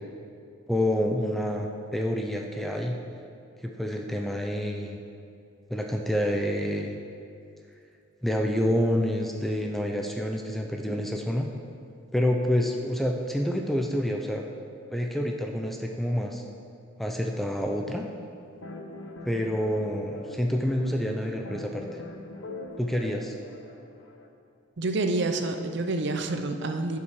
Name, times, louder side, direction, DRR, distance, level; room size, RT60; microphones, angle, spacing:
voice 1, 0.7-3.0 3.6-5.0 5.7-7.0 8.2-11.5 12.1-14.4 14.9-16.4 17.0-18.0 19.3-21.9 22.8-23.4, equal, ahead, 2 dB, 0.4 m, -28 dB
sound 1, 18.6-24.3, left 2 dB, 65° left, 0.7 m, -42 dB
voice 2, 24.8-27.0, right 2 dB, 55° right, 7 dB, 0.5 m, -28 dB
11.0 x 5.9 x 4.8 m, 2.4 s
head